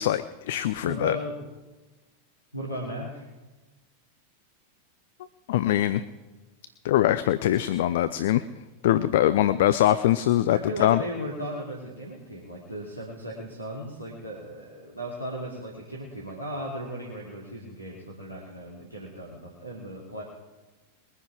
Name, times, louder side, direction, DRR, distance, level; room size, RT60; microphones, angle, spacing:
voice 1, 0.0-1.2 5.5-6.0 6.8-8.4 8.8-11.0, left 13 dB, 55° left, 14 dB, 0.5 m, -23 dB
voice 2, 0.8-1.3 2.5-3.3 10.5-20.2, equal, 90° left, -4 dB, 2.7 m, -36 dB
21.5 x 9.8 x 4.7 m, 1.2 s
figure-of-eight pair, 90°, 0 cm